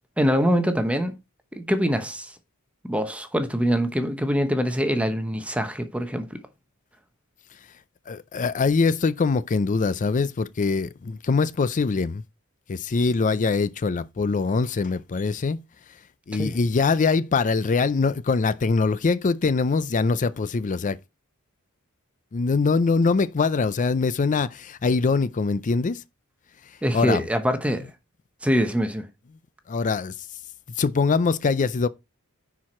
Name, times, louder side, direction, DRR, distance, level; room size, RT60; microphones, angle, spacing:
voice 1, 0.2-1.1 1.5-2.3 2.9-6.4 16.4-16.5 26.8-27.9 28.4-29.1, equal, 5° right, 0.9 m, -24 dB
voice 2, 8.1-12.2 12.7-15.6 16.3-21.0 22.3-26.0 26.9-27.2 29.7-30.2 30.8-31.9, left 4 dB, 35° left, 0.4 m, -23 dB
10.0 x 4.7 x 4.3 m
head